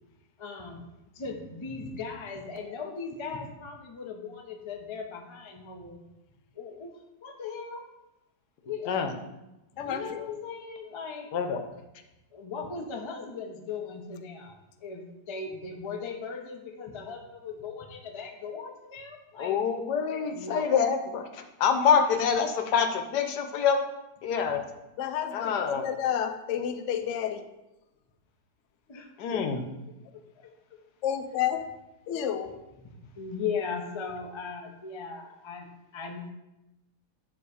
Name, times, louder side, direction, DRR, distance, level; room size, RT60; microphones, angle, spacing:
voice 1, 0.4-0.8 1.1-6.0 6.6-7.8 8.6-9.0 9.8-11.3 12.3-14.5 14.8-19.6 20.2-20.7 28.9-29.6 30.1-30.5 33.2-35.7 35.9-36.3, left 5 dB, 35° left, 2 dB, 0.4 m, -38 dB
voice 2, 9.8-10.3 25.0-27.4 31.0-31.6 32.1-32.5, left 9 dB, 65° left, 8 dB, 0.8 m, -30 dB
voice 3, 19.4-23.8 24.2-24.6 25.3-25.8 29.2-29.6, left 7 dB, 85° left, 5 dB, 1.3 m, -26 dB
9.5 x 3.2 x 4.8 m, 0.96 s
omnidirectional pair, 1.8 m